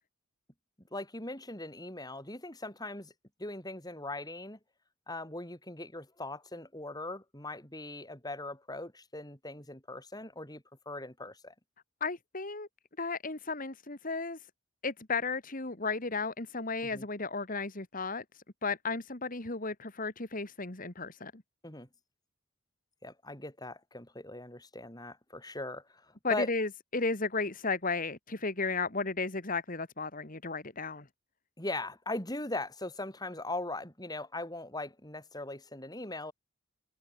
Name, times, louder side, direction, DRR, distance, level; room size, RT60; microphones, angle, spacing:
voice 1, 0.9-3.1 3.4-4.6 5.1-11.5 16.9-17.1 21.6-21.9 23.0-26.5 31.6-36.3, left 2 dB, 20° left, 5.4 m, -40 dB
voice 2, 12.0-12.7 13.0-14.4 14.8-18.2 18.6-21.3 26.2-31.0, left 4 dB, 40° left, 2.1 m, -34 dB
head